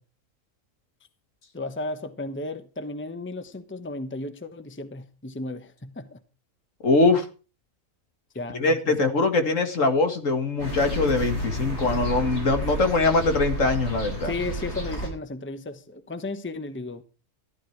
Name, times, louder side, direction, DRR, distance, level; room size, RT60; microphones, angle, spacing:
voice 1, 1.5-6.2 8.3-9.1 14.2-17.0, left 2 dB, 10° left, 1.0 m, -34 dB
voice 2, 6.8-7.3 8.5-14.3, left 3 dB, 65° left, 2.3 m, -22 dB
sound 1, 10.6-15.1, right 1 dB, 50° left, 6.8 m, -31 dB
14.5 x 11.5 x 4.6 m
omnidirectional pair, 1.4 m